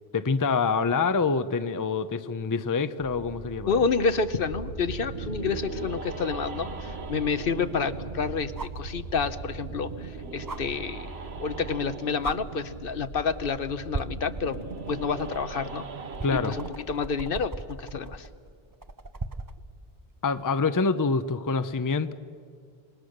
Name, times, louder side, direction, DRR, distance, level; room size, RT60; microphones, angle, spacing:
voice 1, 0.1-3.9 16.2-16.5 20.2-22.1, left 4 dB, 25° left, 12 dB, 0.6 m, -26 dB
sound 1, 3.0-11.9, right 5 dB, 65° right, 1.2 m, -44 dB
voice 2, 3.7-14.6 14.9-15.8 16.3-18.3, left 5 dB, 60° left, 12 dB, 1.0 m, -29 dB
sound 2, 4.5-16.7, right 3 dB, 85° right, 1.5 m, -39 dB
sound 3, 6.3-6.4 8.6-8.9 10.5-10.6 11.7-11.9 12.2-12.4 13.3-13.6 13.9-19.6 21.3-21.4, right 3 dB, 25° right, 0.7 m, -38 dB
27.0 x 21.0 x 6.6 m, 2.2 s
omnidirectional pair, 1.0 m